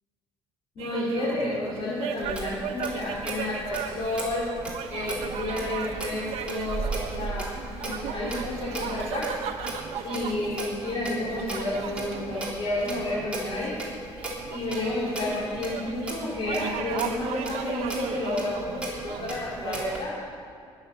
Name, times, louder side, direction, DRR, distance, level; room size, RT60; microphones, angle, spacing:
voice 1, 0.8-4.5 4.9-7.5 7.8-9.3 10.0-13.8 14.5-20.1, left 2 dB, 55° left, -8 dB, 3.5 m, -31 dB
sound 1, 0.8-20.0, right 8 dB, 80° right, 0.8 m, -37 dB
Clock, 2.2-20.0, right 2 dB, 10° right, 3.3 m, -37 dB
19.5 x 7.1 x 6.6 m, 2.2 s
cardioid pair, 100°, 11 cm